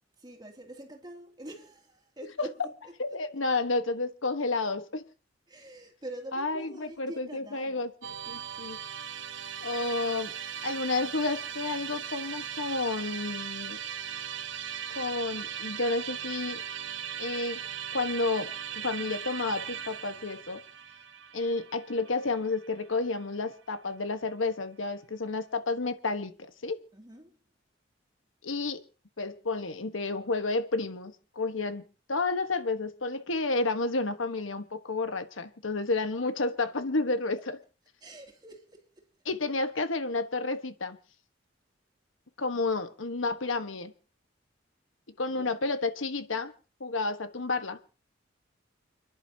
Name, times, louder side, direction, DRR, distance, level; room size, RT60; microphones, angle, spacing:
voice 1, 0.2-2.7 3.1-3.2 5.5-7.9 26.9-27.4 38.0-39.0 45.3-45.6, right 1 dB, 20° right, 2.7 m, -45 dB
voice 2, 3.0-5.0 6.3-7.9 8.3-8.8 9.6-10.3 10.6-13.8 14.9-16.6 17.2-17.6 17.9-20.6 21.3-26.8 28.4-28.8 29.2-37.6 39.2-41.0 42.4-43.9 45.2-46.5 46.8-47.8, left 3 dB, 85° left, 1.3 m, -31 dB
Musical instrument, 8.0-23.2, right 8 dB, 70° right, 1.2 m, -38 dB
30.0 x 11.0 x 2.8 m
head